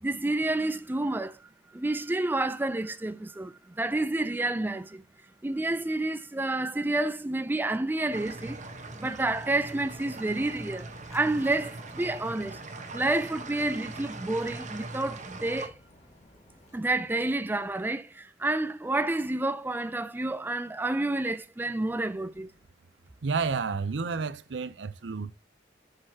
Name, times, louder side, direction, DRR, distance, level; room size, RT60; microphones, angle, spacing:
voice 1, 0.0-1.4 1.7-5.0 5.4-8.6 9.0-10.9 11.1-12.6 12.9-15.7 16.7-22.5, right 2 dB, 10° right, 0.4 m, -29 dB
sound 1, 8.0-16.8, left 1 dB, 40° left, 2.0 m, -56 dB
sound 2, 8.1-15.7, right 3 dB, 45° right, 1.1 m, -41 dB
voice 2, 23.2-25.3, right 5 dB, 75° right, 0.6 m, -30 dB
7.6 x 6.7 x 2.8 m
head